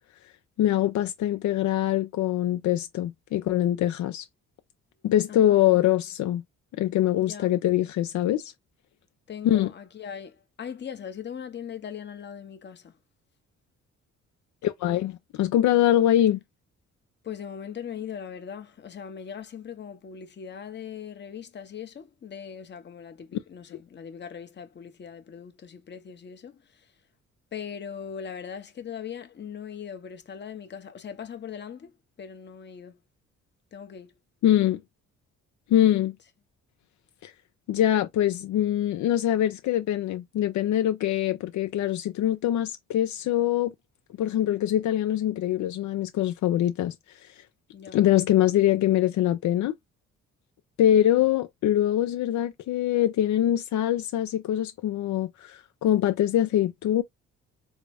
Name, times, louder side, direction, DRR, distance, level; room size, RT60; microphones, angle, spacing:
voice 1, 0.6-4.2 5.0-6.4 6.7-8.5 9.4-9.7 14.6-16.4 34.4-34.8 35.7-36.2 37.2-37.3 37.7-43.7 44.2-46.9 47.9-49.7 50.8-57.0, left 12 dB, 70° left, 0.6 m, -23 dB
voice 2, 5.3-6.0 7.2-7.5 9.3-13.0 17.2-26.9 27.5-33.0 33.7-34.1 47.7-48.0, left 7 dB, 35° left, 0.9 m, -40 dB
3.7 x 2.1 x 3.3 m
cardioid pair, 90°, 30 cm